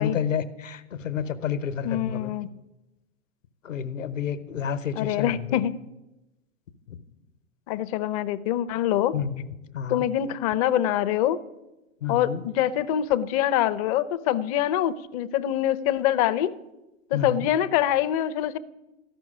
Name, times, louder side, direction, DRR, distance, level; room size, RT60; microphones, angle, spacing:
voice 1, 0.0-2.3 3.6-5.6 6.9-7.0 9.1-9.5 9.7-10.0 12.0-12.4 17.1-17.5, left 7 dB, 70° left, 12 dB, 1.0 m, -30 dB
voice 2, 1.8-2.5 5.0-5.7 7.7-9.1 9.9-11.4 12.1-16.5 17.1-18.6, left 11 dB, 30° left, 15 dB, 0.5 m, -24 dB
13.5 x 6.1 x 9.9 m, 1.0 s
figure-of-eight pair, 100°, 39 cm